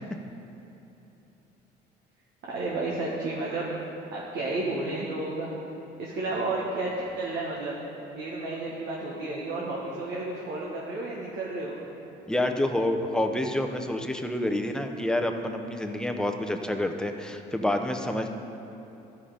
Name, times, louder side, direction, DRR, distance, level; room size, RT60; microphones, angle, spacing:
voice 1, 2.5-3.7 4.1-5.5 6.0-7.8 8.1-11.8, right 2 dB, 70° right, -4 dB, 1.5 m, -32 dB
voice 2, 12.3-18.3, left 1 dB, 5° left, 5 dB, 0.7 m, -28 dB
12.5 x 5.7 x 5.0 m, 3.0 s
cardioid pair, 105°, 18 cm